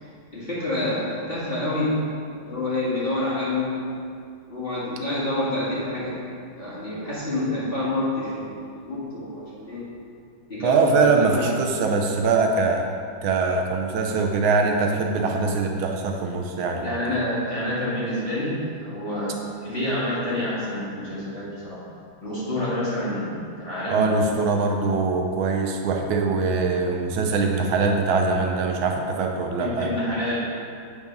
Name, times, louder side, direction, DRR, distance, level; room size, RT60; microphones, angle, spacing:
voice 1, 0.0-2.0 2.3-3.7 4.5-6.2 6.6-9.9 10.5-11.5 16.8-21.8 22.2-24.0 29.6-30.4, left 1 dB, 30° left, -9 dB, 1.6 m, -28 dB
voice 2, 10.6-12.9 13.2-16.9 23.9-29.9, right 4 dB, 80° right, 2 dB, 1.5 m, -22 dB
8.1 x 3.6 x 5.2 m, 2.3 s
omnidirectional pair, 2.2 m